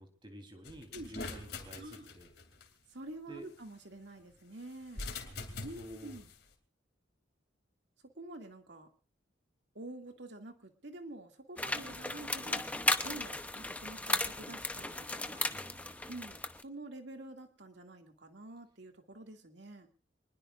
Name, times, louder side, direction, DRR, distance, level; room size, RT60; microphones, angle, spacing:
voice 1, 0.0-2.3 3.3-3.5 5.2-6.2 15.5-16.1, right 1 dB, 25° right, 5 dB, 3.5 m, -51 dB
sound 1, 0.6-2.7 4.8-6.4, left 3 dB, 55° left, 2.9 m, -44 dB
voice 2, 2.9-5.0 5.6-6.3 8.0-8.9 9.7-12.8 13.0-15.4 16.1-19.9, right 2 dB, 65° right, 4 dB, 2.4 m, -48 dB
sound 2, 11.6-16.6, left 2 dB, 5° left, 0.8 m, -35 dB
25.5 x 20.5 x 2.5 m, 0.34 s
head